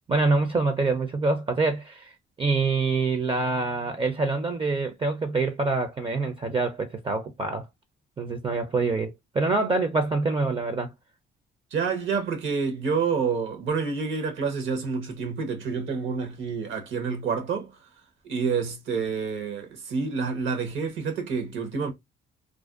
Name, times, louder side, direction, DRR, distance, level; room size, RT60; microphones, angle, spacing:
voice 1, 0.1-2.1 2.4-7.7 8.2-10.9, right 3 dB, 25° right, 0.4 m, -25 dB
voice 2, 11.7-17.7 18.2-21.9, right 5 dB, 75° right, 0.9 m, -28 dB
2.5 x 2.1 x 2.3 m
cardioid pair, 90°, 20 cm